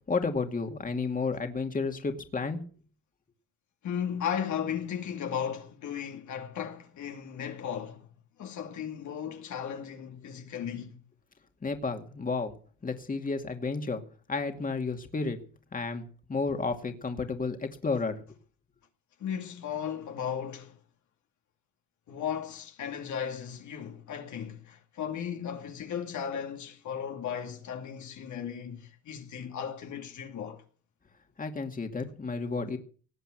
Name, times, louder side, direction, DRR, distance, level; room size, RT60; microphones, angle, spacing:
voice 1, 0.1-2.6 11.6-12.5 12.8-14.0 14.3-15.4 15.7-18.2 31.4-32.8, left 4 dB, 25° left, 2.3 m, -32 dB
voice 2, 3.8-8.1 8.4-11.0 19.2-20.8 22.1-30.6, left 8 dB, 75° left, 2.5 m, -36 dB
18.5 x 8.0 x 7.9 m
cardioid pair, 90°, 30 cm